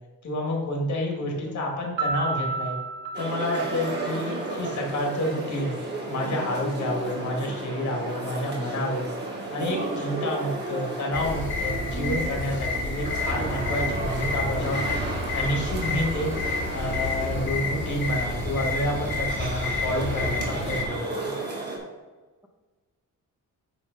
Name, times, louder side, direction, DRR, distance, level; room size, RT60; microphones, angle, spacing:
voice 1, 0.2-2.8 3.2-5.7 6.1-9.1 9.5-15.0 15.3-16.3 16.7-21.3, left 1 dB, 60° left, 0 dB, 2.0 m, -29 dB
voice 2, 1.2-1.7 4.0-4.4 16.2-16.7, equal, 5° right, 3 dB, 0.4 m, -47 dB
Piano, 2.0-4.8, right 4 dB, 90° right, 1.3 m, -31 dB
sound 1, 3.1-21.8, right 2 dB, 30° right, 1.8 m, -33 dB
sound 2, 11.1-20.8, left 3 dB, 35° left, 1.4 m, -30 dB
9.0 x 3.5 x 5.3 m, 1.3 s
wide cardioid pair, 165°, 33 cm